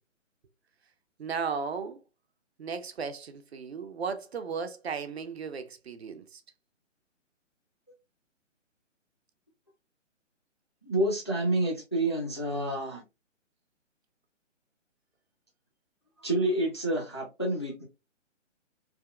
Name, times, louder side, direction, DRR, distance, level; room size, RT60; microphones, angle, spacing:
voice 1, 1.2-2.0 2.6-6.4, right 5 dB, 55° right, 0.5 m, -35 dB
voice 2, 10.9-13.0 16.2-17.9, right 1 dB, 25° left, 0.3 m, -28 dB
3.5 x 2.2 x 2.2 m
figure-of-eight pair, 135°, 38 cm